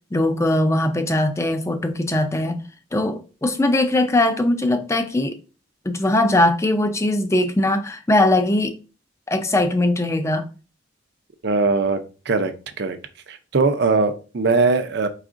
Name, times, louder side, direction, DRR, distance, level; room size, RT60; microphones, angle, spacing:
voice 1, 0.1-2.6 2.9-5.4 5.9-8.7 9.3-10.4, left 1 dB, 15° left, 0.4 m, -20 dB
voice 2, 11.4-12.0 12.3-12.5 12.8-13.0 13.3-15.1, right 3 dB, 55° right, 0.5 m, -20 dB
4.9 x 3.4 x 2.5 m
head